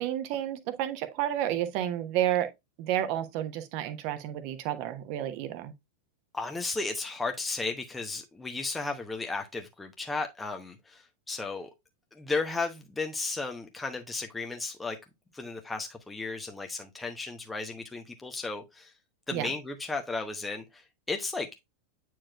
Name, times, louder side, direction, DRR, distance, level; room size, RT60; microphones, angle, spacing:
voice 1, 0.0-2.5 2.8-5.7 19.3-19.5, right 12 dB, 50° right, 1.0 m, -31 dB
voice 2, 6.3-11.7 12.1-15.0 15.3-18.9 19.3-21.6, left 3 dB, 10° left, 0.9 m, -34 dB
8.7 x 4.7 x 2.3 m
figure-of-eight pair, 90°, 0 cm